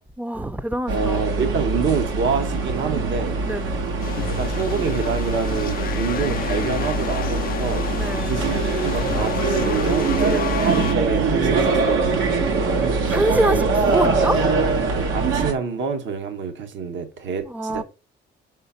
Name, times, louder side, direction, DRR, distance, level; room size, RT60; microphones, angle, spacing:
voice 1, 0.0-1.2 3.5-3.8 8.0-8.4 10.3-10.6 13.0-14.5 17.5-17.8, right 1 dB, 10° right, 0.5 m, -26 dB
voice 2, 0.9-3.4 4.4-8.5 8.8-12.9 13.5-14.0 14.9-17.8, right 5 dB, 70° right, 1.2 m, -27 dB
sound 1, 0.9-15.5, right 4 dB, 85° right, 1.4 m, -23 dB
sound 2, 4.0-11.0, left 11 dB, 50° left, 0.4 m, -30 dB
5.1 x 3.8 x 5.6 m
cardioid pair, 90°, 20 cm